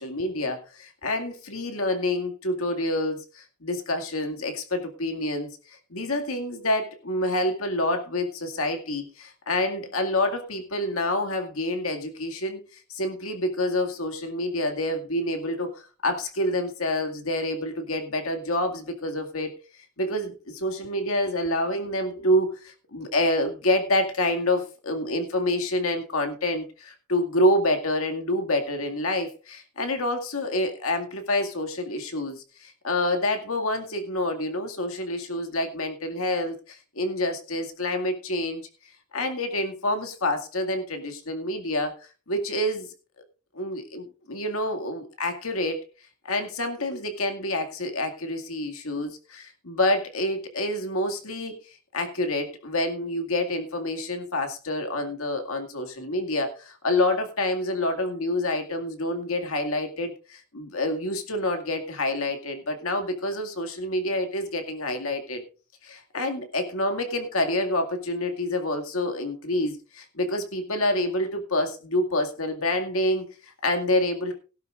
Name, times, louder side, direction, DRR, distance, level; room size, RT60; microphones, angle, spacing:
voice 1, 0.0-19.6 20.0-38.7 39.1-42.0 42.3-42.9 43.5-45.8 46.2-65.4 65.8-74.4, left 1 dB, 85° left, 5 dB, 2.1 m, -27 dB
17.0 x 11.5 x 2.5 m, 0.34 s
head